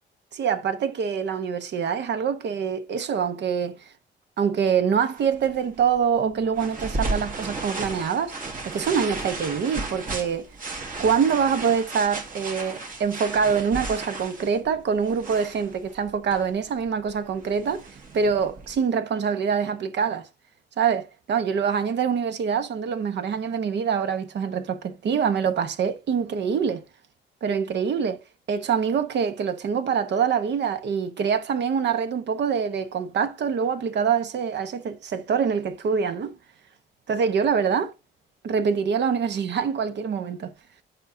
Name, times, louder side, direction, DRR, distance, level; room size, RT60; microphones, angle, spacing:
voice 1, 0.3-3.9 4.4-8.4 8.6-10.5 11.0-20.3 20.8-26.8 27.4-28.2 28.5-36.3 37.1-37.9 38.4-40.5, right 6 dB, 60° right, 1.0 m, -25 dB
sound 1, 5.1-18.8, right 3 dB, 45° right, 1.8 m, -35 dB
8.0 x 5.3 x 2.7 m
cardioid pair, 90°, 20 cm